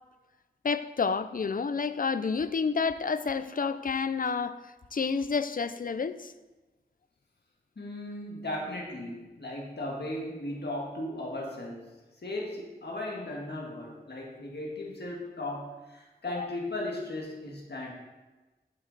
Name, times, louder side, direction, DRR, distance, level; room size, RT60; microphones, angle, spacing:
voice 1, 0.6-4.5 4.9-6.3 16.4-16.5, left 5 dB, 55° left, 0.5 m, -29 dB
voice 2, 7.8-11.9 12.2-17.9, left 1 dB, 90° left, 1.6 m, -36 dB
8.2 x 7.5 x 4.0 m
wide cardioid pair, 70°, 17 cm